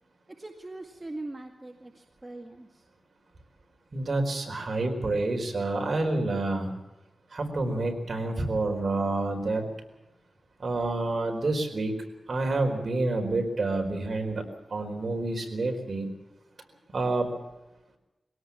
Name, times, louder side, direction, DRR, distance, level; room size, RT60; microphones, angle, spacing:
voice 1, 0.4-2.8, right 2 dB, 25° right, 2 dB, 2.1 m, -41 dB
voice 2, 3.9-6.7 7.3-9.7 10.6-11.9 12.3-14.4 14.7-16.1 16.9-17.3, right 2 dB, 50° right, 4 dB, 4.6 m, -28 dB
22.0 x 17.5 x 7.3 m, 0.99 s
wide cardioid pair, 85°, 0 cm